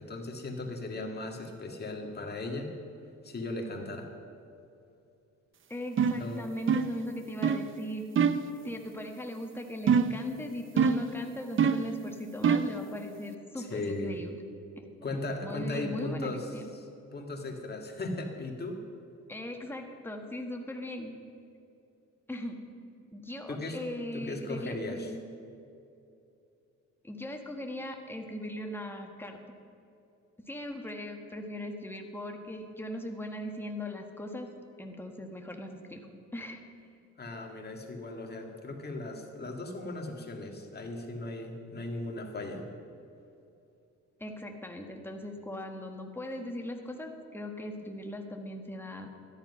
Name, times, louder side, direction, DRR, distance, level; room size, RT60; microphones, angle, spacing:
voice 1, 0.0-2.8 3.2-4.1 6.1-6.5 13.5-14.3 15.0-18.8 23.5-23.8 24.1-25.1 37.2-42.7, left 2 dB, 35° left, 2 dB, 2.0 m, -37 dB
voice 2, 5.7-8.0 8.6-14.4 14.8-14.9 15.4-16.7 19.3-21.2 22.3-22.6 23.1-25.3 27.0-29.4 30.4-34.5 34.8-36.1 36.3-36.6 44.2-49.1, left 1 dB, 5° left, 3 dB, 1.4 m, -39 dB
sound 1, 6.0-6.3 6.7-7.0 7.4-7.7 8.2-8.5 9.9-10.3 10.8-11.1 11.6-11.9 12.4-12.8, right 6 dB, 40° right, 0.6 m, -25 dB
13.0 x 10.5 x 5.6 m, 2.7 s
cardioid pair, 90°, 30 cm